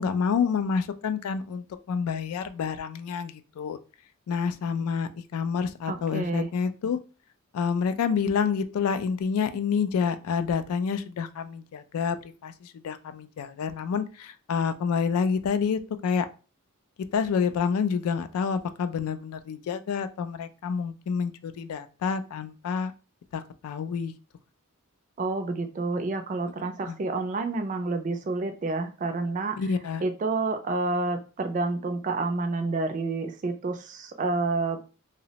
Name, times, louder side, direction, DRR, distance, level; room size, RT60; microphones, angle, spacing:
voice 1, 0.0-3.8 4.3-7.0 7.5-12.2 12.4-16.3 17.1-22.9 23.3-24.1 26.9-27.0 29.6-30.0, left 6 dB, 85° left, 11 dB, 0.3 m, -28 dB
voice 2, 5.9-6.5 25.2-29.6 30.0-34.8, right 3 dB, 35° right, 6 dB, 0.3 m, -29 dB
2.8 x 2.0 x 2.7 m, 0.34 s
head